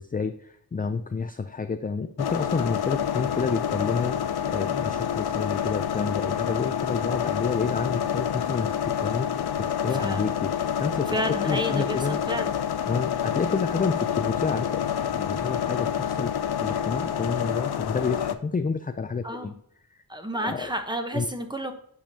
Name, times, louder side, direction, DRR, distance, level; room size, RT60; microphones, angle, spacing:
voice 1, 0.0-9.3 9.8-11.2 11.4-12.2 12.9-19.5 20.4-20.7 21.1-21.3, left 5 dB, 25° left, 8 dB, 0.4 m, -29 dB
sound 1, 2.2-18.3, left 9 dB, 70° left, 0.5 m, -28 dB
voice 2, 9.9-10.3 11.1-12.5 19.2-19.5 20.1-21.7, equal, 10° right, 6 dB, 1.0 m, -31 dB
8.7 x 5.2 x 2.8 m, 0.67 s
wide cardioid pair, 65°, 40 cm